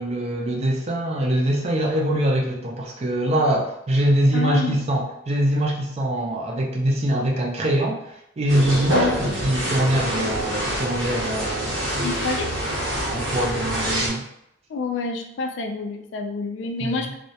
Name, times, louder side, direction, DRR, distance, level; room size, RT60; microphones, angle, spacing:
voice 1, 0.0-8.0 8.4-11.8 13.1-14.2 16.8-17.0, right 1 dB, 30° right, -1 dB, 0.4 m, -23 dB
voice 2, 4.3-4.8 8.9-9.2 12.0-12.5 14.7-17.1, left 4 dB, 65° left, 4 dB, 0.3 m, -28 dB
sound 1, 8.5-14.1, right 1 dB, 75° right, 0.7 m, -26 dB
2.2 x 2.0 x 2.7 m, 0.80 s
head